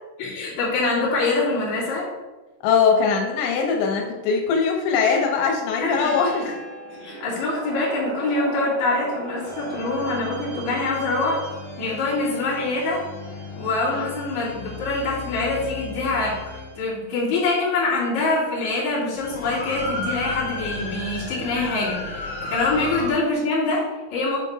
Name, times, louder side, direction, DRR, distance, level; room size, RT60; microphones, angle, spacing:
voice 1, 0.2-2.1 5.8-6.4 7.0-11.4 11.8-13.1 13.6-16.4 16.8-24.4, left 3 dB, 45° left, -7 dB, 3.3 m, -25 dB
voice 2, 2.6-6.5 13.9-14.1, left 5 dB, 85° left, 1 dB, 3.2 m, -21 dB
sound 1, 5.6-7.5 9.5-16.8 18.0-18.1 19.2-23.1, left 2 dB, 70° left, 3.5 m, -35 dB
sound 2, 6.6-14.3, right 3 dB, 75° right, 4.0 m, -39 dB
8.2 x 4.1 x 4.7 m, 1.1 s
omnidirectional pair, 5.0 m